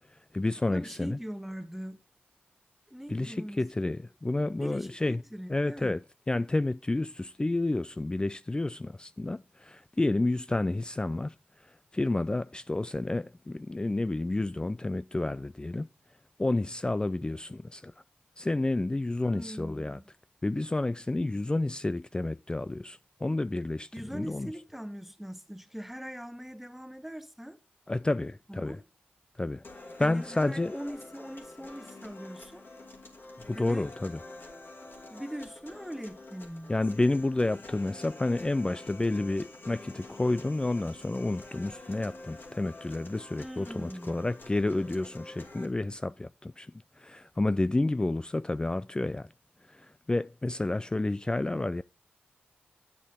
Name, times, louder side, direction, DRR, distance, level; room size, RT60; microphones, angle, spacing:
voice 1, 0.1-1.2 3.1-5.2 5.5-15.9 16.4-18.0 18.4-20.0 20.4-24.5 27.9-28.8 29.4-29.6 30.0-30.8 33.5-34.2 36.7-49.3 49.6-51.8, left 2 dB, 20° left, 0.3 m, -30 dB
voice 2, 0.6-2.0 2.9-3.6 4.6-5.9 19.2-20.0 23.9-27.6 28.5-28.8 30.0-32.7 33.5-33.9 35.1-36.7 43.4-44.3, equal, 5° right, 1.2 m, -41 dB
sound 1, 29.6-45.6, left 2 dB, 65° left, 2.4 m, -48 dB
8.3 x 8.3 x 3.6 m
cardioid pair, 40°, 4 cm